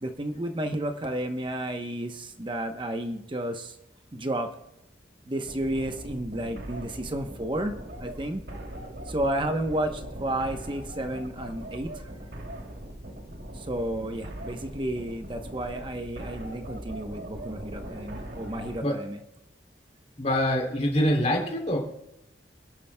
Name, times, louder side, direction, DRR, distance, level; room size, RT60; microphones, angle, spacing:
voice 1, 0.0-3.8 4.1-4.5 5.3-7.7 8.0-8.4 9.1-12.1 13.5-19.2, right 1 dB, 25° right, 5 dB, 0.9 m, -32 dB
sound 1, 5.4-18.8, right 1 dB, 60° right, 2.7 m, -40 dB
voice 2, 20.2-21.8, equal, 35° left, 0 dB, 3.1 m, -24 dB
28.0 x 11.0 x 2.2 m, 0.88 s
head